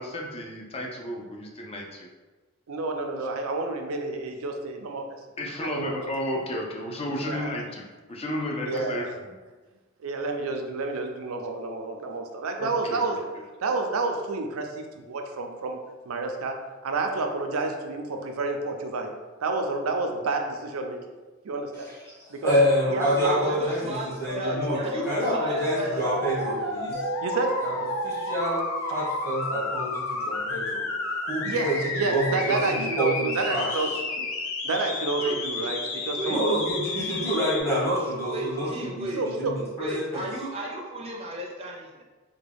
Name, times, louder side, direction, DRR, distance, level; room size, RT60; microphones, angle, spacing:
voice 1, 0.0-2.1 5.4-9.1 12.6-13.2, left 1 dB, 30° left, 0 dB, 0.5 m, -33 dB
voice 2, 2.7-5.0 5.6-6.0 7.1-7.5 8.7-9.0 10.0-13.2 13.6-15.8 16.1-16.5 16.8-19.1 19.4-21.0 21.4-21.9 22.3-22.5 22.9-23.6 27.2-27.5 31.4-31.7 31.9-33.9 34.2-34.3 34.6-36.4 39.2-39.5, right 3 dB, 90° right, 4 dB, 0.5 m, -29 dB
voice 3, 22.4-27.0 27.6-30.8 31.2-33.8 36.2-40.3, equal, 15° left, -7 dB, 1.0 m, -27 dB
voice 4, 23.2-26.0 35.2-36.4 38.3-39.2 39.8-42.0, right 1 dB, 30° right, -2 dB, 0.5 m, -35 dB
sound 1, 24.3-37.6, left 3 dB, 80° left, 0.5 m, -31 dB
Mallet percussion, 26.9-30.4, right 12 dB, 50° left, 1.2 m, -38 dB
3.5 x 2.2 x 3.4 m, 1.3 s
head